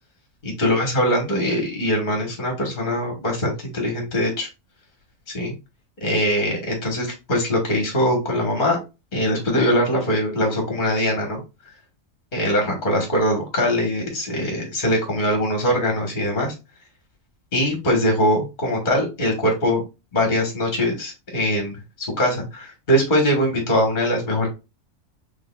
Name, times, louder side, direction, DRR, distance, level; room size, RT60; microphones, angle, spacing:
voice 1, 0.4-4.5 5.3-5.5 6.0-8.8 9.1-11.4 12.3-16.5 17.5-19.8 20.1-24.5, equal, 40° left, 2 dB, 1.3 m, -22 dB
6.3 x 3.3 x 2.3 m, 0.27 s
omnidirectional pair, 1.4 m